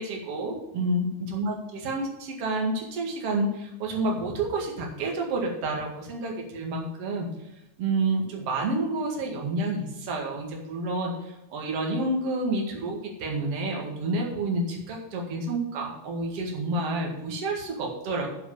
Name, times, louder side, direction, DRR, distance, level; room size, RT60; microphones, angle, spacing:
voice 1, 0.0-7.3 7.8-18.3, right 2 dB, 60° right, 0 dB, 1.6 m, -29 dB
8.8 x 6.4 x 7.1 m, 0.87 s
omnidirectional pair, 6.0 m